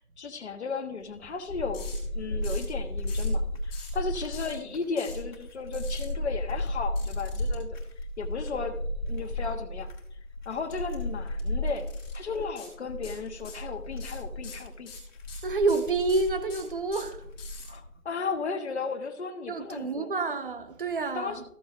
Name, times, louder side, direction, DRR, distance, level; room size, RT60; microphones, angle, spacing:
voice 1, 0.0-7.8 8.2-9.9 10.4-11.9 12.1-14.9 17.7-20.1 21.1-21.4, left 4 dB, 45° left, 1.3 m, -35 dB
sound 1, 1.0-17.9, left 1 dB, 30° left, 1.7 m, -34 dB
sound 2, 1.7-2.0 2.4-2.7 3.1-3.3 3.7-4.0 4.3-4.5 5.0-5.2 5.7-6.0 7.0-7.5 10.7-11.0 11.3-11.4 11.9-12.2 12.6-12.7 13.0-13.7 14.0-17.7, left 5 dB, 15° left, 2.4 m, -45 dB
voice 2, 15.4-17.3 19.5-21.4, right 3 dB, 35° right, 0.9 m, -28 dB
14.0 x 7.8 x 2.5 m
figure-of-eight pair, 160°, 45 cm